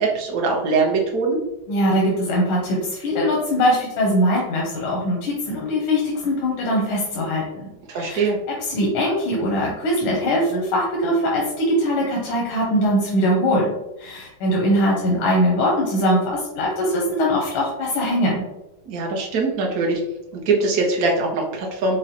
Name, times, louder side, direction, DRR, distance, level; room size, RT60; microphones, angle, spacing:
voice 1, 0.0-1.4 7.9-8.4 18.9-20.0 20.3-22.0, right 3 dB, 65° right, 0 dB, 0.9 m, -22 dB
voice 2, 1.7-7.4 7.9-8.3 8.7-13.7 14.0-18.4, equal, 90° left, -2 dB, 1.6 m, -21 dB
4.9 x 2.2 x 2.8 m, 0.92 s
omnidirectional pair, 2.2 m